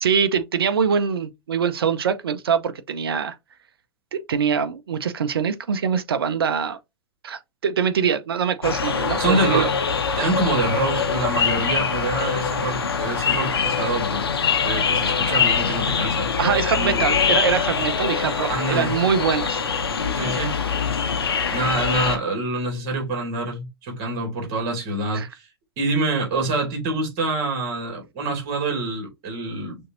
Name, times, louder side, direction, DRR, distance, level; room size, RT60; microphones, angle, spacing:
voice 1, 0.0-3.3 4.1-6.8 7.2-9.7 16.4-19.6 25.1-25.3, right 7 dB, 65° right, 0.6 m, -23 dB
sound 1, 8.6-22.2, left 6 dB, 70° left, 0.9 m, -23 dB
voice 2, 9.2-9.7 10.2-14.2 14.6-16.3 16.7-17.0 18.5-18.9 20.1-20.5 21.5-25.5 25.8-29.8, right 2 dB, 40° right, 2.3 m, -26 dB
6.5 x 2.7 x 2.6 m
figure-of-eight pair, 95°, 13 cm